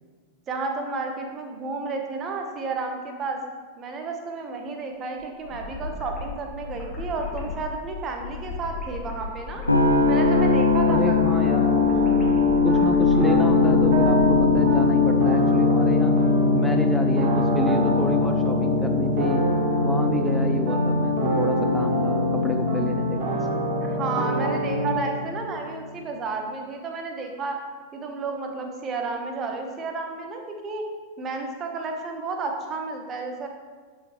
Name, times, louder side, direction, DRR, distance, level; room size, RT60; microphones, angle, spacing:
voice 1, 0.5-3.4 3.8-9.6 10.1-11.3 23.8-27.6 27.9-30.8 31.2-33.5, right 3 dB, 25° right, 3 dB, 1.2 m, -31 dB
sound 1, 5.2-14.4, left 3 dB, 25° left, 2.4 m, -37 dB
sound 2, 9.7-25.6, left 4 dB, 85° left, 0.7 m, -22 dB
voice 2, 10.9-11.9 12.6-16.2 16.5-19.5 19.8-23.4, left 1 dB, 5° left, 6 dB, 0.3 m, -31 dB
sound 3, 11.4-25.0, equal, 45° right, 1.7 m, -26 dB
10.0 x 5.8 x 3.2 m, 1.5 s
figure-of-eight pair, 90°, 0 cm